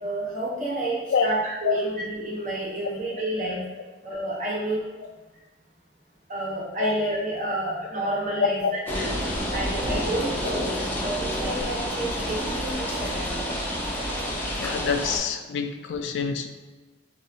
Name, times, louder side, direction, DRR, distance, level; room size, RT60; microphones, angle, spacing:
voice 1, 0.0-3.6 4.0-4.9 6.3-8.6 8.9-9.0 9.5-10.7 11.0-13.4, right 1 dB, 45° right, -4 dB, 0.9 m, -29 dB
sound 1, 8.9-15.2, equal, 10° left, 0.5 m, -29 dB
voice 2, 14.6-16.5, left 6 dB, 85° left, 7 dB, 0.3 m, -27 dB
3.1 x 2.7 x 2.7 m, 1.2 s
head